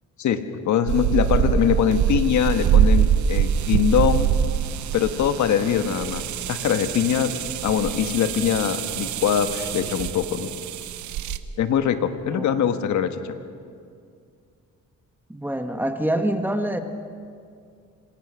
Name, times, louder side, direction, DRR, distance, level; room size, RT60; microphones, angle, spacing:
voice 1, 0.2-4.3 4.9-7.3 7.6-10.5 11.6-13.3, left 8 dB, 70° left, 8 dB, 1.4 m, -23 dB
sound 1, 0.9-11.4, right 8 dB, 70° right, 0.9 m, -24 dB
voice 2, 15.3-16.8, right 1 dB, 5° right, 6 dB, 1.5 m, -25 dB
25.5 x 18.0 x 6.3 m, 2.3 s
cardioid pair, 90°, 30 cm